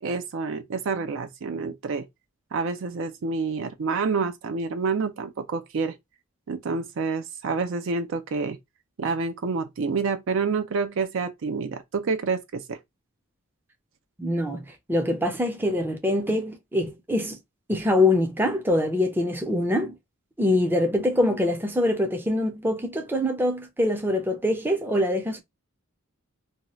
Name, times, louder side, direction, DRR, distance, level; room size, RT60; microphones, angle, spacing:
voice 1, 0.0-2.1 2.5-6.0 6.5-8.6 9.0-12.8, right 4 dB, 65° right, 0.4 m, -28 dB
voice 2, 14.2-17.4 17.7-20.0 20.4-25.4, left 1 dB, 10° right, 0.5 m, -24 dB
2.7 x 2.3 x 2.9 m
head